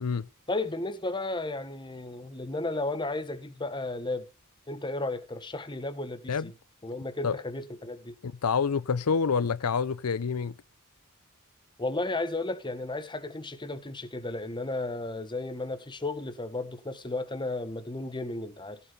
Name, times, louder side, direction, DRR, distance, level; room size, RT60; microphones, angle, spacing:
voice 1, 0.5-4.3 4.7-6.5 6.8-8.1 11.8-18.8, left 2 dB, 20° left, 1.4 m, -34 dB
voice 2, 8.4-10.5, left 5 dB, 85° left, 0.6 m, -27 dB
16.0 x 7.2 x 5.2 m
head